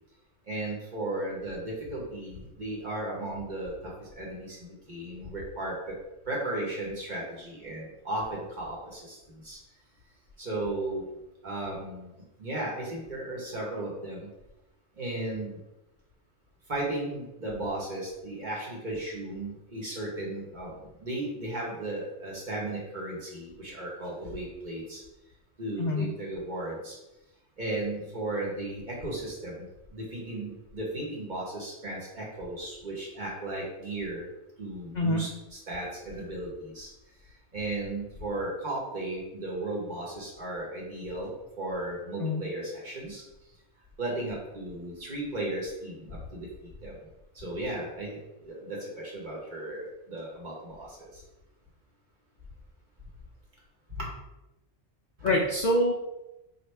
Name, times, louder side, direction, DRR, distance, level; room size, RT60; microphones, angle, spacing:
voice 1, 0.5-5.9 6.3-9.6 10.4-11.0 11.4-12.1 12.4-14.3 15.0-15.6 16.7-20.7 21.0-25.0 25.6-27.0 27.6-29.6 29.9-34.3 34.6-36.9 37.5-43.2 44.0-46.5 46.8-46.9 47.3-51.2 54.0-54.1 55.2-55.3, right 1 dB, 40° right, -4 dB, 1.1 m, -35 dB
voice 2, 55.2-55.9, left 1 dB, 65° left, -1 dB, 0.4 m, -25 dB
4.4 x 2.5 x 3.2 m, 0.97 s
omnidirectional pair, 1.2 m